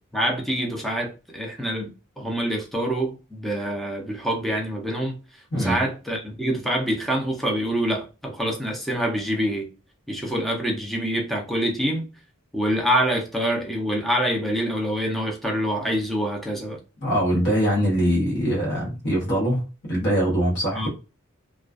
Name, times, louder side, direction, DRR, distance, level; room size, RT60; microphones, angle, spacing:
voice 1, 0.1-5.2 5.5-9.7 10.1-12.1 12.5-16.8 20.7-20.9, equal, ahead, 0.4 m, -26 dB
voice 2, 5.5-5.8 17.0-20.9, equal, 55° left, 1.0 m, -23 dB
2.3 x 2.3 x 2.3 m
head